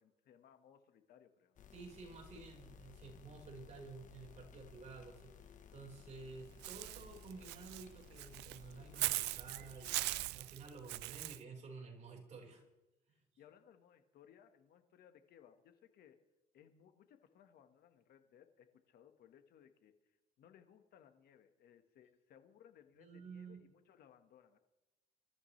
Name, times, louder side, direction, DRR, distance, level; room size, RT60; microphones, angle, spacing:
voice 1, 0.0-1.6 13.4-16.2 16.5-24.6, left 9 dB, 65° left, 7 dB, 1.7 m, -64 dB
sound 1, 1.6-10.3, left 7 dB, 50° left, 1.2 m, -58 dB
voice 2, 1.7-12.6 23.0-23.7, right 4 dB, 45° right, 0 dB, 5.1 m, -52 dB
Walk footsteps / Bird, 6.6-11.4, right 20 dB, 85° right, 0.4 m, -40 dB
24.5 x 13.5 x 3.4 m, 0.99 s
cardioid pair, 110°, 17 cm